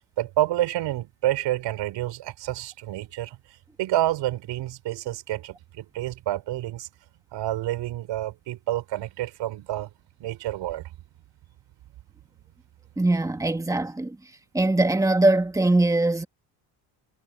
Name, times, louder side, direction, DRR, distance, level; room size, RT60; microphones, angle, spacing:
voice 1, 0.2-3.4 3.8-6.9 7.3-9.9 10.2-10.8, right 14 dB, 85° right, 5.1 m, -28 dB
voice 2, 13.0-14.2 14.5-16.2, right 2 dB, 10° right, 2.3 m, -21 dB
cardioid pair, 140°, 42 cm